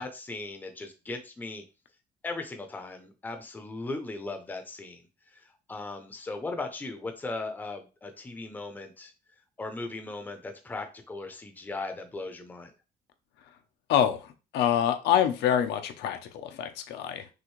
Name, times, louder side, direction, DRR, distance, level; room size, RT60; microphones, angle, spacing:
voice 1, 0.0-1.6 2.2-5.0 5.3-9.1 9.6-12.7, left 3 dB, 10° left, 6 dB, 0.6 m, -38 dB
voice 2, 13.9-17.3, left 9 dB, 80° left, 7 dB, 0.7 m, -26 dB
6.2 x 2.6 x 3.1 m, 0.31 s
cardioid pair, 175°, 17 cm